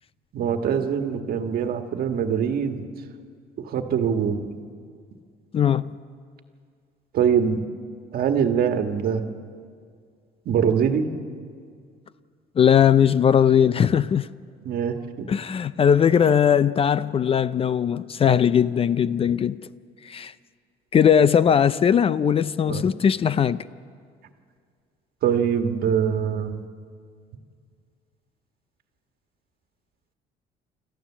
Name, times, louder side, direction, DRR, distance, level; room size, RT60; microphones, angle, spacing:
voice 1, 0.3-2.8 3.6-4.5 7.1-7.6 8.1-9.2 10.4-11.1 14.6-15.3 22.7-22.9 25.2-26.6, right 7 dB, 65° right, 1.5 m, -23 dB
voice 2, 5.5-5.9 12.6-14.3 15.3-19.6 20.1-20.3 20.9-23.6, left 8 dB, 35° left, 0.4 m, -19 dB
25.0 x 14.0 x 7.3 m
cardioid pair, 110°, 17 cm